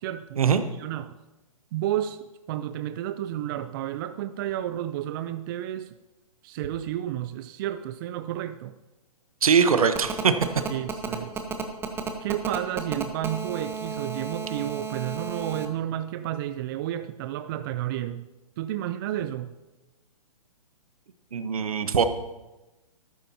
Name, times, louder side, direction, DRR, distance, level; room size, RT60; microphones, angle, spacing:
voice 1, 0.0-0.4 0.8-1.1 1.7-6.0 6.4-8.7 10.7-11.4 12.2-18.3 18.6-19.5, right 12 dB, 35° right, 11 dB, 0.5 m, -31 dB
voice 2, 9.4-10.3 21.3-22.0, right 6 dB, 75° right, 10 dB, 1.1 m, -21 dB
Telephone, 10.0-15.7, right 6 dB, 10° right, 1.0 m, -32 dB
13.5 x 12.0 x 2.9 m, 1.1 s
hypercardioid pair, 130°, 19 cm